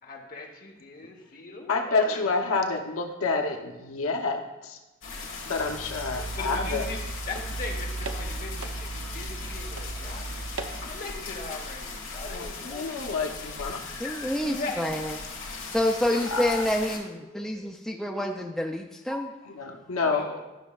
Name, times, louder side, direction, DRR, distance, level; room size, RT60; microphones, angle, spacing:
voice 1, 0.0-2.4 6.4-10.3 10.8-12.6 14.4-14.9 16.1-16.4 19.9-20.4, left 3 dB, 40° left, 1 dB, 1.1 m, -39 dB
voice 2, 1.7-4.8 5.4-6.8 12.2-14.3 16.3-16.6 19.5-20.2, left 4 dB, 80° left, 3 dB, 0.8 m, -29 dB
sound 1, 5.0-17.0, left 4 dB, 65° left, 1.6 m, -39 dB
sound 2, 5.6-10.9, right 2 dB, 75° right, 0.7 m, -36 dB
voice 3, 14.0-15.2 15.7-19.4, left 1 dB, ahead, 1 dB, 0.3 m, -28 dB
12.0 x 6.1 x 2.3 m, 1.1 s
head